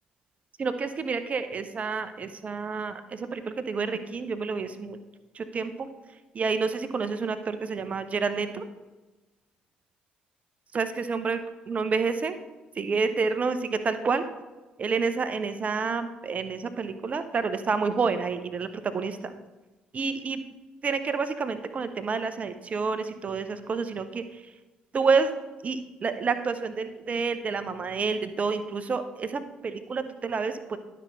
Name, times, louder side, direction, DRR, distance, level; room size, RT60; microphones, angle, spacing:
voice 1, 0.6-5.0 5.3-5.9 6.3-8.7 10.7-12.4 12.8-14.3 14.8-19.3 19.9-20.4 20.8-24.4 24.9-25.3 25.6-30.8, right 4 dB, 35° right, 10 dB, 0.7 m, -29 dB
11.5 x 5.5 x 4.0 m, 1.2 s
figure-of-eight pair, 45°, 4 cm